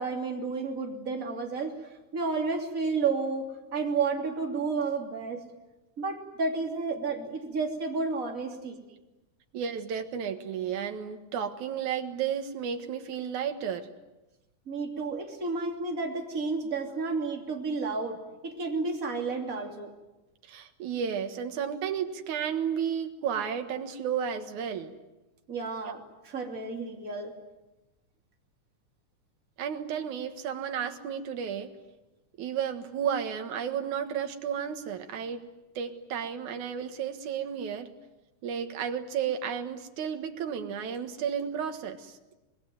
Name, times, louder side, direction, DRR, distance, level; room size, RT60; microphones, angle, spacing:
voice 1, 0.0-1.7 2.1-5.4 6.0-8.8 14.7-19.9 25.5-27.3, right 4 dB, 25° right, 2 dB, 3.1 m, -31 dB
voice 2, 9.5-13.9 15.0-15.1 20.5-24.9 29.6-31.7 32.4-35.4 35.8-37.9 38.4-42.2, right 8 dB, 70° right, 6 dB, 2.9 m, -32 dB
25.5 x 21.0 x 9.4 m, 1.1 s
omnidirectional pair, 3.6 m